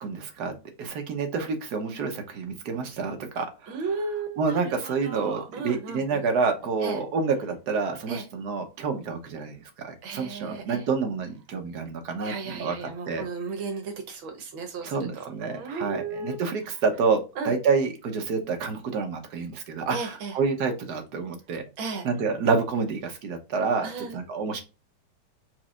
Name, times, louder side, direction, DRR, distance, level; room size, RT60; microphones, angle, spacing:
voice 1, 0.0-3.9 4.4-13.2 14.8-21.6 22.0-24.6, right 4 dB, 60° right, 5 dB, 1.5 m, -28 dB
voice 2, 3.7-6.2 6.8-7.0 8.1-8.2 10.0-10.8 12.2-14.9 15.5-16.5 17.4-17.5 19.9-20.3 21.8-22.1 23.8-24.2, right 4 dB, 75° right, 4 dB, 1.8 m, -34 dB
4.7 x 4.2 x 2.4 m, 0.29 s
omnidirectional pair, 2.2 m